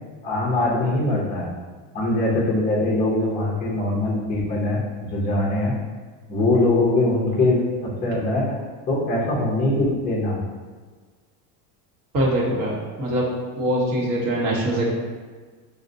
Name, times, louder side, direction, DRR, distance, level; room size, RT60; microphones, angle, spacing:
voice 1, 0.2-1.5 1.9-4.8 5.1-5.7 6.3-8.6 8.9-10.4, left 2 dB, 20° left, -6 dB, 0.5 m, -22 dB
voice 2, 12.1-13.3 13.6-14.9, right 1 dB, 35° right, -4 dB, 1.0 m, -23 dB
6.2 x 2.2 x 2.6 m, 1.5 s
cardioid pair, 165°, 48 cm